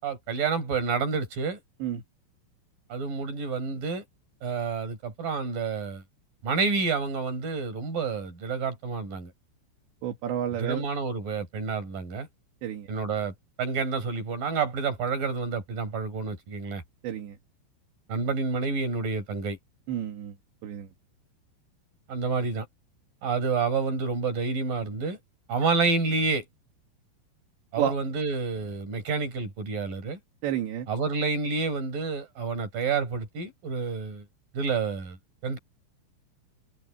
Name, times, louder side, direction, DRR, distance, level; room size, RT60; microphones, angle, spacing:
voice 1, 0.0-1.6 2.9-4.0 4.4-6.0 6.4-9.3 10.6-12.3 12.9-16.8 18.1-19.6 22.1-22.7 23.2-25.2 25.5-26.4 27.7-30.2 30.9-34.2 34.5-35.2 35.4-35.6, right 4 dB, 45° right, 6.3 m, -29 dB
voice 2, 10.0-10.8 12.6-12.9 17.0-17.4 19.9-20.4 20.6-20.9 27.8-27.9 30.4-30.9, right 10 dB, 65° right, 4.1 m, -30 dB
omnidirectional pair, 5.7 m